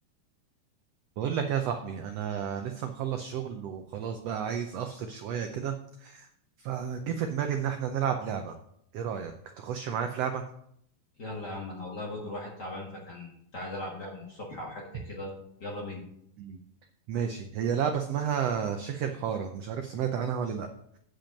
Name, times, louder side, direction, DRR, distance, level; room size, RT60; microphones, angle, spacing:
voice 1, 1.2-5.7 6.0-6.3 6.6-8.5 8.9-10.4 16.4-16.6 17.1-20.7, right 8 dB, 85° right, 6 dB, 1.4 m, -31 dB
voice 2, 11.2-15.3 15.6-16.0, left 1 dB, 40° left, -2 dB, 1.7 m, -38 dB
8.8 x 5.2 x 6.3 m, 0.71 s
omnidirectional pair, 3.7 m